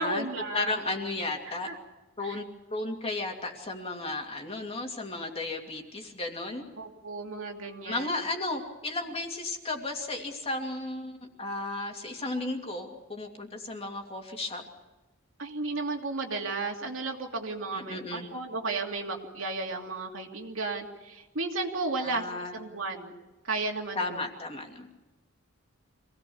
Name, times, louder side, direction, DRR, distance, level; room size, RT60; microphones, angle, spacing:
voice 1, 0.0-0.8 1.4-1.8 2.2-2.4 6.8-8.1 15.4-23.2 23.4-24.2, right 3 dB, 75° right, 1 dB, 2.7 m, -34 dB
voice 2, 0.5-1.7 2.2-6.7 7.8-14.6 17.7-18.3 22.0-22.6 24.0-24.9, left 2 dB, 30° left, 2 dB, 2.7 m, -34 dB
26.0 x 18.0 x 7.2 m, 1.1 s
head